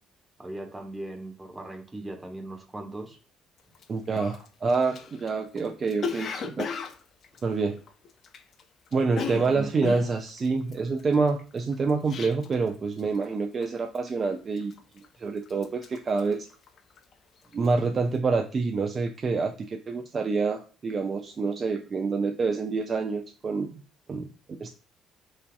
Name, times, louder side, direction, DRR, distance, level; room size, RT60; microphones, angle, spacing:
voice 1, 0.4-3.2 9.5-9.7, right 1 dB, 15° right, 3 dB, 1.1 m, -38 dB
Cough, 3.7-3.8 4.2-8.6 8.9-12.7 13.0-13.3 13.6-14.1 14.6-15.2 15.5-17.1 17.4-17.8, left 6 dB, 50° left, 0.4 m, -36 dB
voice 2, 3.9-6.7 7.4-7.8 8.9-16.5 17.5-23.8 24.1-24.3 24.6-24.7, right 4 dB, 40° right, 4 dB, 0.4 m, -27 dB
4.1 x 2.6 x 2.4 m, 0.38 s
figure-of-eight pair, 45°, 0 cm